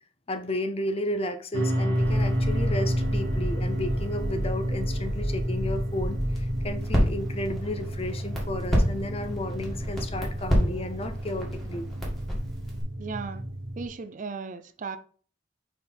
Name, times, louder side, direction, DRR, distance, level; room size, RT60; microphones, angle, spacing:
voice 1, 0.3-11.9, left 1 dB, 30° left, 0.6 m, -33 dB
sound 1, 1.5-13.9, equal, 90° right, 1.5 m, -30 dB
Crackle, 2.0-12.8, equal, ahead, 1.9 m, -30 dB
voice 2, 13.0-13.4 13.8-15.0, right 5 dB, 40° right, 0.4 m, -36 dB
4.9 x 4.7 x 4.3 m
head